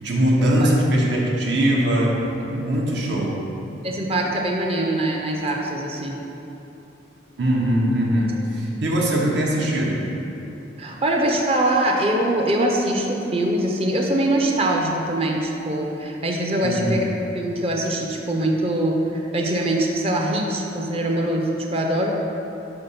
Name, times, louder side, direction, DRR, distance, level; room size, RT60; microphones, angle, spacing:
voice 1, 0.0-3.4 7.4-10.0 16.6-17.0, right 1 dB, 70° right, -2 dB, 0.8 m, -21 dB
voice 2, 3.8-6.2 10.8-17.1 17.3-22.1, right 1 dB, 30° right, 0 dB, 0.5 m, -23 dB
5.6 x 3.6 x 5.6 m, 3.0 s
head